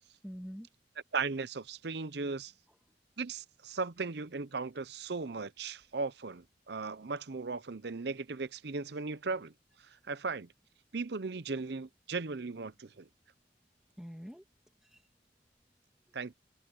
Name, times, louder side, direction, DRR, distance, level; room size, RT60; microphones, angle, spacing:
voice 1, 0.2-0.8 2.7-3.0 8.9-9.0 9.9-10.1 12.7-12.8 13.1-16.3, equal, 5° right, 2.1 m, -51 dB
voice 2, 1.1-2.5 3.2-9.5 10.1-10.5 10.9-13.1 16.1-16.3, right 4 dB, 60° right, 0.7 m, -37 dB
head